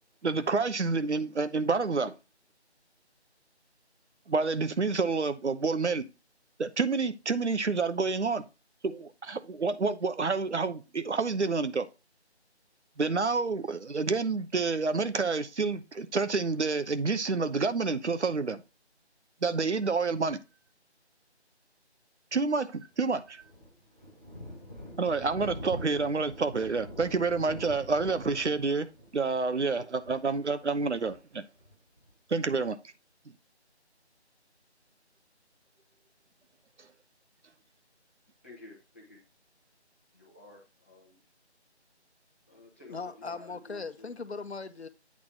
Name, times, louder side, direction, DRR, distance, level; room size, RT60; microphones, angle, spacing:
voice 1, 0.2-2.1 4.3-6.1 6.6-8.5 8.8-11.9 13.0-18.6 19.4-20.4 22.3-23.4 25.0-28.9 29.1-31.4 32.3-32.8, right 4 dB, 80° right, 1.0 m, -28 dB
Thunder, 23.0-32.1, equal, 15° right, 1.2 m, -45 dB
voice 2, 38.4-39.2 40.1-41.2 42.5-44.1, left 2 dB, 10° left, 1.0 m, -52 dB
voice 3, 42.9-44.9, left 4 dB, 70° left, 1.0 m, -39 dB
8.6 x 4.1 x 4.5 m
figure-of-eight pair, 170°, 34 cm